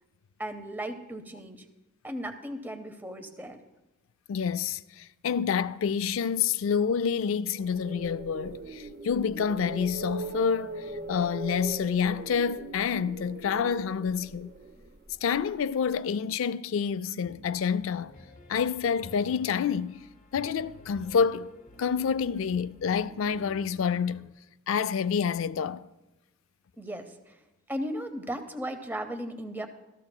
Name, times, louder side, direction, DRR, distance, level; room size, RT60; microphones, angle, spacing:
voice 1, 0.4-1.7 2.0-3.6 26.8-27.4 27.7-29.7, equal, 10° right, 0.7 m, -36 dB
voice 2, 4.3-14.5 15.2-18.1 18.5-20.0 20.3-21.5 21.8-24.3 24.7-25.8, left 6 dB, 70° left, 0.3 m, -28 dB
sound 1, 7.5-15.6, right 2 dB, 45° right, 0.7 m, -40 dB
Piano, 17.2-24.3, left 1 dB, 35° left, 0.8 m, -51 dB
14.0 x 13.5 x 2.2 m
head